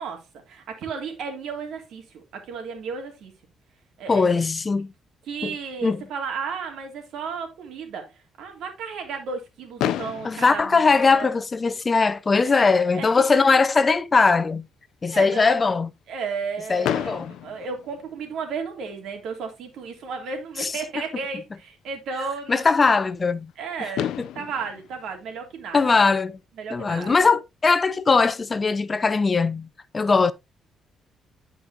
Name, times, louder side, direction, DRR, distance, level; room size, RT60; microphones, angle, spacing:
voice 1, 0.0-3.3 4.0-4.4 5.3-11.4 12.4-13.6 15.1-15.6 16.1-22.9 23.6-24.1 24.3-25.9 26.6-27.3, right 5 dB, 75° right, 2.9 m, -34 dB
voice 2, 4.1-4.9 5.4-5.5 5.8-6.0 10.2-14.6 15.0-15.9 16.7-17.3 20.6-20.7 22.5-23.5 25.7-26.4 26.7-29.7 29.9-30.3, left 4 dB, 30° left, 0.6 m, -20 dB
Fireworks, 9.8-11.8 12.6-12.7 12.9-13.1 13.4-13.5 16.8-18.7 20.4-20.5 23.5-23.6 24.0-26.3, left 11 dB, 85° left, 0.5 m, -32 dB
12.0 x 5.3 x 2.8 m
cardioid pair, 90°, 0 cm